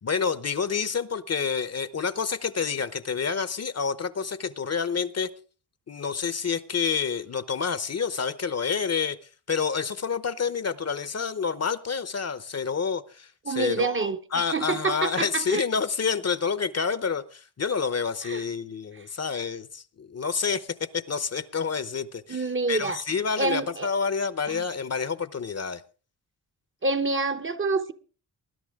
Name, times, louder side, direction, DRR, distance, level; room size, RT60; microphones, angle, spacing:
voice 1, 0.0-5.3 5.9-9.2 9.5-25.8, left 6 dB, 40° left, 0.9 m, -28 dB
voice 2, 13.5-14.2 14.5-15.6 18.2-18.4 22.3-23.0 23.4-23.9 24.5-24.6 26.8-27.9, right 3 dB, 30° right, 0.9 m, -27 dB
20.0 x 11.0 x 3.6 m
cardioid pair, 100°, 39 cm